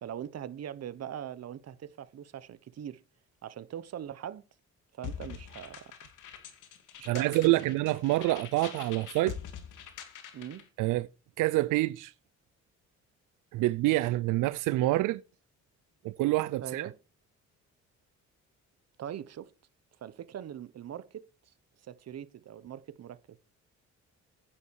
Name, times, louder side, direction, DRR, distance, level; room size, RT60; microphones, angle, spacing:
voice 1, 0.0-3.0 3.4-4.4 4.9-5.9 7.0-7.9 10.3-10.7 16.6-16.9 19.0-19.5 20.0-21.3 21.8-23.4, right 10 dB, 55° right, 1.1 m, -41 dB
sound 1, 5.0-10.7, left 8 dB, 85° left, 2.4 m, -44 dB
voice 2, 7.1-9.4 10.8-11.1 11.4-12.1 13.5-15.2 16.0-16.9, right 18 dB, 90° right, 0.5 m, -27 dB
9.7 x 8.8 x 4.7 m
cardioid pair, 90°, 30 cm